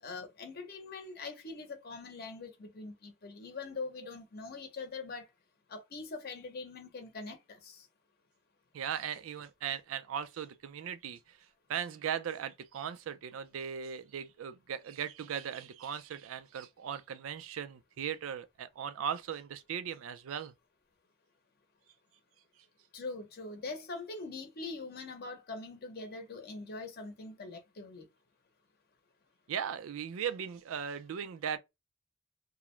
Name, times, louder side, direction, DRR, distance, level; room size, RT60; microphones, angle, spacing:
voice 1, 0.0-5.3 5.7-7.9 22.9-28.1, left 3 dB, 50° left, 0.7 m, -43 dB
voice 2, 8.7-11.4 11.7-20.5 29.5-31.6, right 8 dB, 85° right, 0.4 m, -38 dB
2.4 x 2.0 x 3.0 m
head